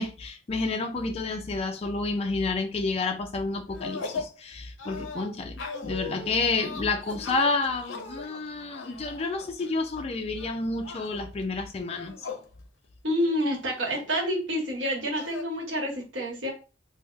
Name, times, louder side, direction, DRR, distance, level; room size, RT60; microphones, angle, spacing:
voice 1, 0.0-12.1, left 3 dB, 35° left, 0.4 m, -30 dB
sound 1, 3.7-4.4 4.8-10.0 10.4-11.2 11.9-12.5 12.8-12.9 13.2-14.1 15.1-15.4, left 4 dB, 85° left, 0.5 m, -39 dB
voice 2, 13.0-16.5, equal, 85° right, 1.2 m, -28 dB
3.5 x 2.1 x 3.1 m
head